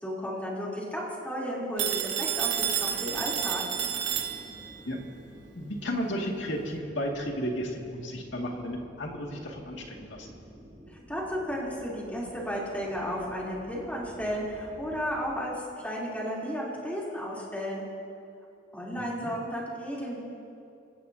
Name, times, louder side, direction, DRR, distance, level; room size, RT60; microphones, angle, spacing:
voice 1, 0.0-3.6 11.1-17.9 18.7-20.2, equal, 10° left, -5 dB, 3.3 m, -33 dB
Telephone, 1.8-4.8, right 9 dB, 85° right, 1.2 m, -30 dB
sound 1, 2.4-15.2, equal, 15° right, 3.6 m, -51 dB
voice 2, 5.5-10.3 19.0-19.3, equal, 80° left, 0 dB, 2.2 m, -33 dB
26.0 x 15.5 x 2.8 m, 2.6 s
head